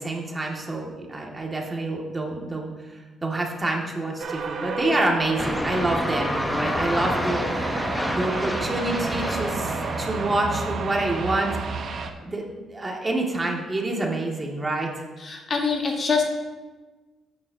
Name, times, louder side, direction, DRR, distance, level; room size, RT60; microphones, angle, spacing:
voice 1, 0.0-11.5 12.2-14.9, right 2 dB, 20° right, -1 dB, 2.0 m, -27 dB
sound 1, 4.2-12.1, right 4 dB, 55° right, 1.0 m, -31 dB
sound 2, 5.4-10.5, left 1 dB, 15° left, 0.8 m, -29 dB
voice 2, 15.2-16.2, left 5 dB, 45° left, 1 dB, 1.6 m, -24 dB
14.0 x 9.5 x 2.8 m, 1.2 s
cardioid pair, 90°, 0 cm